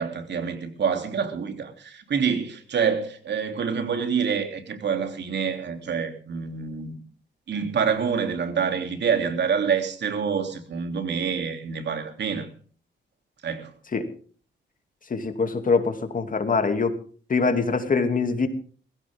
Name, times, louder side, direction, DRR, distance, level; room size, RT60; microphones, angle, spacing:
voice 1, 0.0-6.9 7.5-12.5 13.4-13.7, right 6 dB, 70° right, 3.2 m, -27 dB
voice 2, 15.1-16.9 17.3-18.5, left 4 dB, 45° left, 2.7 m, -23 dB
20.0 x 16.5 x 3.7 m
cardioid pair, 85°, 19 cm